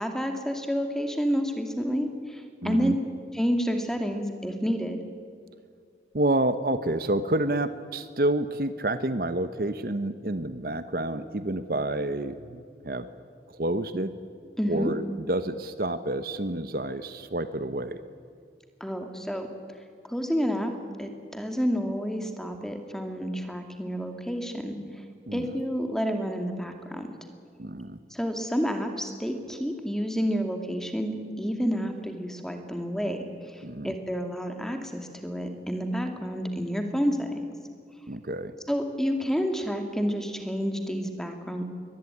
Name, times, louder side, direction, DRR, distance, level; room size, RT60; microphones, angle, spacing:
voice 1, 0.0-2.9 3.3-5.0 14.6-14.9 18.8-19.5 20.1-20.7 21.0-25.0 25.3-27.1 28.1-37.3 38.7-41.6, equal, 5° left, 5 dB, 2.3 m, -29 dB
voice 2, 2.6-3.0 6.1-13.1 13.5-14.1 14.7-18.0 25.3-25.5 27.6-28.0 33.6-33.9 38.1-38.5, right 1 dB, 55° right, 11 dB, 1.0 m, -29 dB
23.0 x 19.5 x 9.8 m, 2.2 s
head